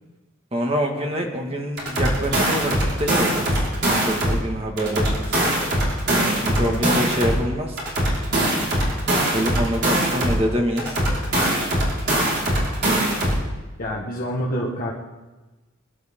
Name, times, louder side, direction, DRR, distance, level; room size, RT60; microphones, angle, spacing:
voice 1, 0.5-2.7 3.0-3.6 3.9-5.6 6.2-7.8 9.3-11.0, equal, 30° right, 1 dB, 2.1 m, -26 dB
sound 1, 1.8-4.4 4.8-7.4 7.8-10.4 10.8-13.4, right 1 dB, 55° right, 5.0 m, -21 dB
voice 2, 6.5-6.9 13.8-14.9, equal, 45° left, -4 dB, 1.7 m, -27 dB
24.5 x 11.5 x 3.8 m, 1.2 s
head